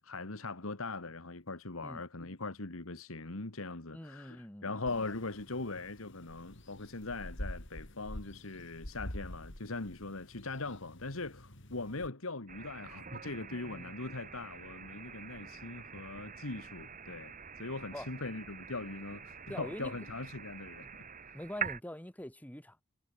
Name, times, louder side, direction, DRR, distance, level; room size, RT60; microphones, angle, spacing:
voice 1, 0.0-21.4, left 3 dB, 75° left, 2.0 m, -41 dB
voice 2, 3.9-4.7 13.5-13.9 17.9-18.1 19.5-19.9 21.3-22.8, left 1 dB, 5° left, 1.4 m, -44 dB
sound 1, 4.9-12.1, left 1 dB, 60° left, 4.4 m, -47 dB
sound 2, 12.5-21.8, right 6 dB, 40° right, 2.5 m, -45 dB
head